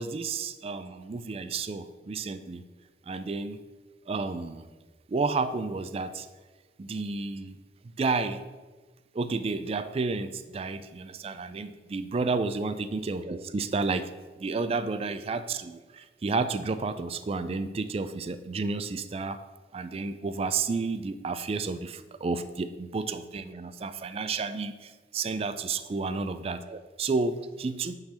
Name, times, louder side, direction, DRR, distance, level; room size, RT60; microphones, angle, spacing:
voice 1, 0.0-2.6 3.1-3.6 4.1-4.7 5.1-6.3 6.8-7.6 8.0-8.4 9.1-14.1 14.4-19.4 19.7-27.9, right 4 dB, 35° right, 12 dB, 0.3 m, -31 dB
8.7 x 3.8 x 4.2 m, 1.3 s
head